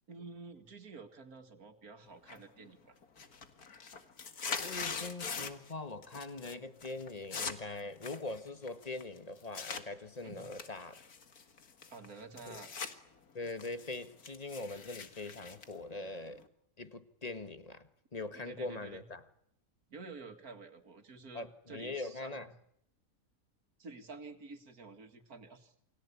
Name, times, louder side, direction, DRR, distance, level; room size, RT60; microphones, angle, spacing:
voice 1, 0.1-2.9 10.2-10.5 11.9-12.7 18.3-19.0 19.9-22.5 23.8-25.7, right 4 dB, 80° right, 2.6 m, -50 dB
sound 1, 2.3-2.7 3.0-5.7 6.0-6.5 6.8-9.8 10.4-12.9 13.3-16.5, left 5 dB, 85° left, 2.4 m, -42 dB
voice 2, 4.6-10.9 12.5-12.6 13.3-16.4 16.8-19.2 21.3-22.5, left 2 dB, 25° left, 1.6 m, -42 dB
29.0 x 22.0 x 8.5 m
omnidirectional pair, 1.5 m